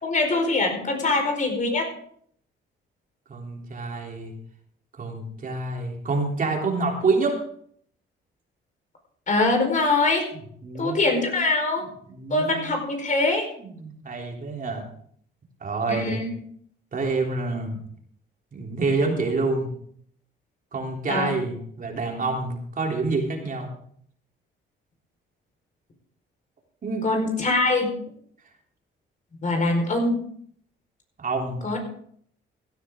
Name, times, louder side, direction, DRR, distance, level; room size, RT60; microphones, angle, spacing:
voice 1, 0.0-1.9 9.3-10.3 10.8-11.9 12.3-13.5 15.9-16.3 21.1-21.3 27.0-27.9 29.4-30.2 31.6-31.8, left 2 dB, 40° left, 3 dB, 4.7 m, -23 dB
voice 2, 3.3-4.3 5.0-7.4 10.3-11.0 11.8-12.8 13.6-14.8 15.6-16.2 16.9-17.8 18.5-19.7 20.7-23.7 26.8-27.1 31.2-31.6, right 3 dB, 45° right, 0 dB, 3.6 m, -27 dB
16.5 x 12.0 x 3.8 m, 0.62 s
cardioid pair, 90°, 20 cm